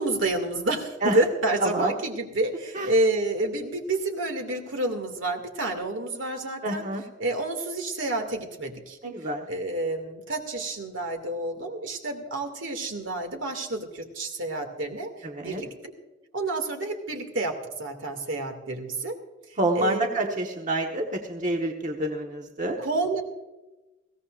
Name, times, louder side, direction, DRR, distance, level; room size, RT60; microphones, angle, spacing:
voice 1, 0.0-6.9 7.2-9.0 9.5-15.1 15.4-15.7 16.3-19.2 19.7-20.3 22.8-23.2, right 2 dB, 75° right, 5 dB, 2.3 m, -29 dB
voice 2, 1.6-1.9 2.7-2.9 6.6-7.0 9.0-9.5 15.2-15.6 19.6-22.8, right 1 dB, 40° right, 2 dB, 1.2 m, -27 dB
21.5 x 17.0 x 2.5 m, 1.1 s
head